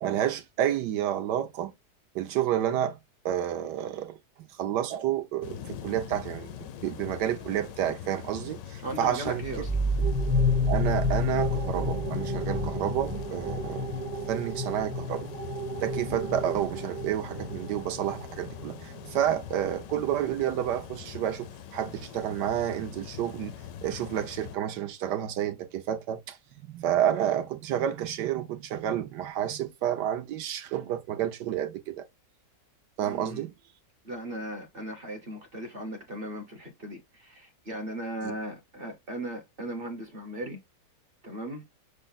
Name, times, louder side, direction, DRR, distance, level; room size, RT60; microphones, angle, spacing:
voice 1, 0.0-1.7 2.1-3.0 3.2-4.1 4.6-6.5 6.8-9.4 10.7-14.0 14.3-15.3 15.8-23.5 23.8-32.1 33.0-33.5 38.2-38.3, right 10 dB, 75° right, 1.3 m, -30 dB
sound 1, 5.4-24.6, left 9 dB, 85° left, 1.3 m, -43 dB
voice 2, 8.8-9.7 33.0-33.5 34.0-40.6 41.2-41.6, right 1 dB, 40° right, 0.9 m, -37 dB
sound 2, 9.4-18.7, left 1 dB, 25° right, 0.5 m, -30 dB
6.2 x 2.1 x 3.9 m
omnidirectional pair, 1.8 m